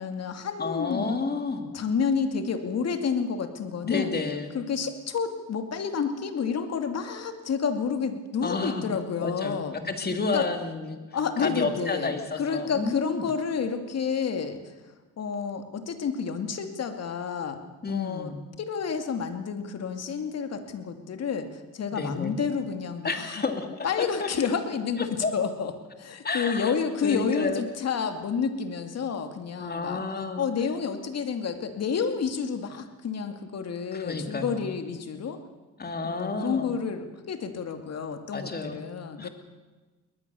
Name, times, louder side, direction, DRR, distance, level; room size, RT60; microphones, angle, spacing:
voice 1, 0.0-1.1 1.7-4.1 4.5-9.8 10.3-10.5 11.1-14.6 15.2-17.6 17.9-23.4 23.8-25.7 26.0-30.0 30.4-35.4 36.0-39.3, left 6 dB, 55° left, 7 dB, 2.5 m, -30 dB
voice 2, 0.6-1.7 3.8-4.5 8.4-8.9 9.2-11.0 11.4-13.3 17.8-18.5 21.9-22.4 23.0-24.3 25.2-25.3 26.2-26.7 27.0-27.7 29.6-30.4 33.9-34.7 35.8-36.7 38.3-38.8 39.2-39.3, left 3 dB, 30° left, 6 dB, 3.0 m, -31 dB
22.0 x 19.5 x 7.1 m, 1.2 s
cardioid pair, 90°, 30 cm